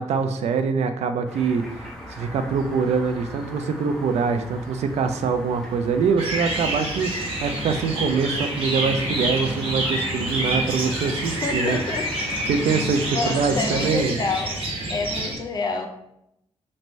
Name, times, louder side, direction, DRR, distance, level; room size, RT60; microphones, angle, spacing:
voice 1, 0.0-11.8 12.5-14.2, right 5 dB, 75° right, 7 dB, 0.4 m, -24 dB
sound 1, 1.3-13.9, equal, 5° left, 0.8 m, -41 dB
sound 2, 6.2-15.3, right 1 dB, 55° right, 1.2 m, -27 dB
voice 2, 11.4-12.1 13.1-14.5 14.9-15.9, left 4 dB, 35° left, 5 dB, 0.4 m, -28 dB
3.2 x 2.6 x 4.2 m, 0.79 s
wide cardioid pair, 155°, 11 cm